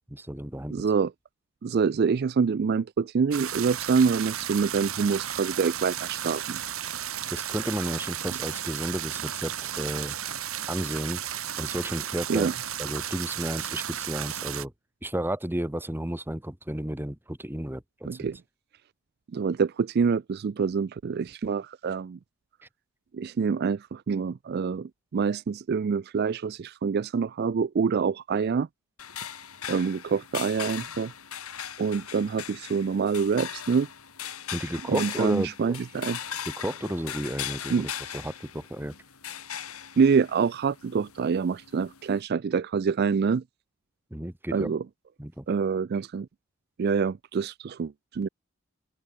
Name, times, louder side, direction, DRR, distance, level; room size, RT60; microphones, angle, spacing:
voice 1, 0.1-0.8 7.3-10.1 10.7-11.2 11.6-12.5 12.8-14.7 15.0-18.3 34.5-35.8 36.5-38.9 44.1-44.7 45.2-45.4, right 1 dB, 10° right, 1.1 m, -32 dB
voice 2, 0.7-1.1 1.6-6.6 12.3-12.6 18.1-18.4 19.3-22.2 23.1-28.7 29.7-31.1 31.8-33.9 34.9-36.2 37.7-37.9 40.0-43.4 44.5-44.8 45.5-46.3 46.8-48.3, right 5 dB, 45° right, 0.3 m, -26 dB
sound 1, 3.3-14.6, right 10 dB, 70° right, 3.4 m, -34 dB
sound 2, 29.0-42.2, left 9 dB, 80° left, 5.3 m, -39 dB
open air
head